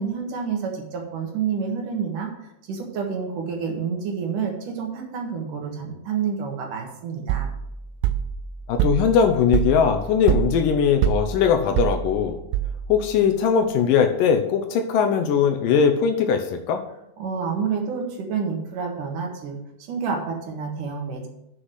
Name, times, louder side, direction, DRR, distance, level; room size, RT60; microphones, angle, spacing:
voice 1, 0.0-7.5 17.2-21.3, right 6 dB, 60° right, 2 dB, 2.7 m, -29 dB
sound 1, 7.3-13.1, right 10 dB, 85° right, 2.6 m, -26 dB
voice 2, 8.7-12.4 12.9-16.8, left 7 dB, 80° left, 5 dB, 2.0 m, -20 dB
7.8 x 6.3 x 7.8 m, 0.83 s
omnidirectional pair, 4.8 m